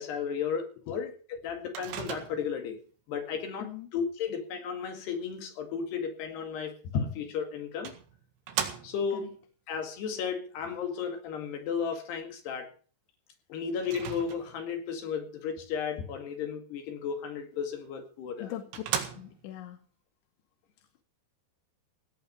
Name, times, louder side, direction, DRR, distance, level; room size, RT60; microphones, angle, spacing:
voice 1, 0.0-2.8 3.1-7.9 8.8-9.4 9.7-12.7 13.5-18.5, left 6 dB, 70° left, 5 dB, 4.1 m, -34 dB
Microwave oven, 1.8-2.7 7.0-7.1 7.9-9.2 13.8-14.7 17.9-18.0 18.4-18.5 18.7-19.6, right 9 dB, 90° right, 4.0 m, -36 dB
voice 2, 19.2-19.8, left 13 dB, 90° left, 8 dB, 3.5 m, -40 dB
17.5 x 6.0 x 9.2 m, 0.41 s
omnidirectional pair, 5.0 m